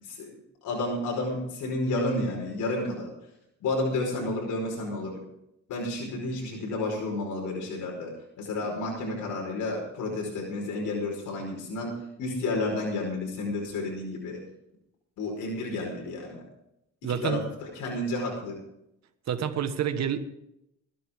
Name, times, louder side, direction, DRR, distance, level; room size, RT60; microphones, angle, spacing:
voice 1, 0.0-3.1 3.6-5.2 5.7-8.1 8.4-14.4 15.2-16.4 17.0-18.6, left 2 dB, 85° left, 0 dB, 5.1 m, -31 dB
voice 2, 17.0-17.4 19.3-20.2, right 8 dB, 60° right, 7 dB, 1.6 m, -28 dB
22.0 x 10.0 x 3.7 m, 0.81 s
cardioid pair, 90°, 30 cm